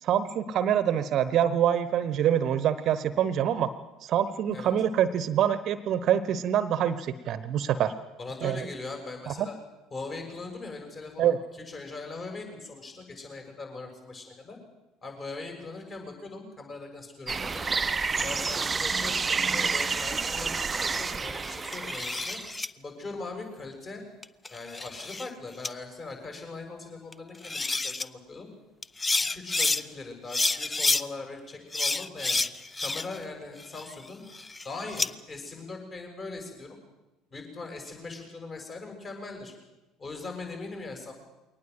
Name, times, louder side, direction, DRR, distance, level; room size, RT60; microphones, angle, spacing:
voice 1, 0.0-3.7 4.0-7.9 8.4-8.6 9.3-9.5 11.2-11.4, right 10 dB, 45° right, 15 dB, 1.0 m, -25 dB
voice 2, 8.2-9.5 9.9-14.6 15.0-17.6 18.1-22.4 22.8-24.0 24.5-28.5 29.3-32.4 32.8-34.3 34.6-36.8 37.3-39.5 40.0-41.1, left 3 dB, 30° left, 3 dB, 7.0 m, -40 dB
sound 1, 17.3-22.6, right 4 dB, 25° right, 0.7 m, -29 dB
sound 2, 21.6-22.7 24.2-25.3 25.6-25.7 27.1-27.2 27.4-28.0 28.8-29.8 30.3-31.0 31.7-33.2 33.6-35.1, left 3 dB, 15° left, 0.7 m, -29 dB
22.5 x 19.0 x 7.8 m, 1.1 s
figure-of-eight pair, 60°, 0 cm